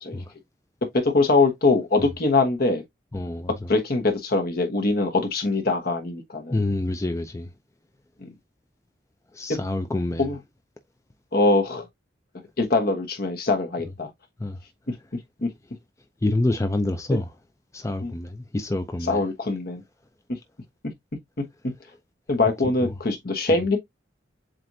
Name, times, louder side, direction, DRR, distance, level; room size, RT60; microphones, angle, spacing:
voice 1, 0.9-2.8 3.7-6.6 8.2-8.3 9.5-9.6 10.2-10.4 11.3-11.8 12.6-14.1 15.4-15.5 18.0-18.1 19.0-19.8 22.3-23.8, left 3 dB, 60° left, 1.1 m, -22 dB
voice 2, 3.1-3.7 6.5-7.5 9.3-10.3 14.4-14.6 16.2-17.3 17.7-19.2 22.8-22.9, left 2 dB, 15° left, 0.5 m, -27 dB
7.6 x 2.6 x 2.7 m
head